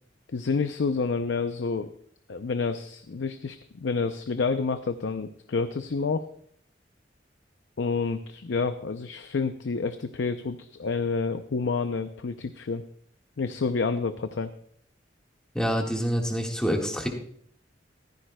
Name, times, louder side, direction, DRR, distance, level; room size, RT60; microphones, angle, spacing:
voice 1, 0.3-1.9 2.3-6.2 7.8-12.8 13.4-14.5, left 4 dB, 85° left, 9 dB, 0.5 m, -29 dB
voice 2, 15.5-17.1, equal, 5° left, 1 dB, 1.6 m, -26 dB
15.0 x 14.5 x 2.2 m, 0.63 s
head